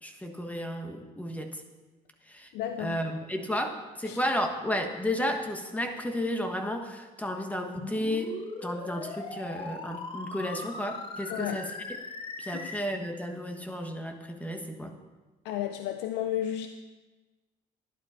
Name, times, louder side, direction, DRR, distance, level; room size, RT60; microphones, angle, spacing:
voice 1, 0.0-1.6 2.3-2.5 2.8-12.0 12.4-14.9, equal, 10° left, 4 dB, 1.3 m, -33 dB
voice 2, 2.5-3.0 4.1-4.2 11.3-11.6 12.5-12.6 15.4-16.7, left 11 dB, 90° left, 8 dB, 0.6 m, -32 dB
sound 1, 7.8-12.8, left 3 dB, 30° left, 1.1 m, -39 dB
12.0 x 11.0 x 4.4 m, 1.2 s
cardioid pair, 110°, 17 cm